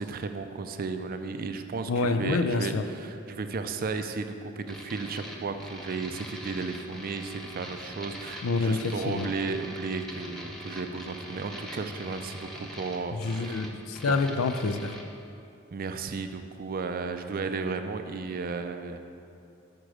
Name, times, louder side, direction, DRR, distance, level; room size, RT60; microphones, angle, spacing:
voice 1, 0.0-13.7 14.1-14.2 15.7-19.0, right 4 dB, 45° right, 8 dB, 0.4 m, -34 dB
voice 2, 1.9-2.9 8.4-9.3 13.1-15.0, left 3 dB, 80° left, 8 dB, 0.5 m, -27 dB
sound 1, 4.7-15.0, equal, ahead, 0.8 m, -42 dB
6.6 x 6.1 x 6.2 m, 2.6 s
head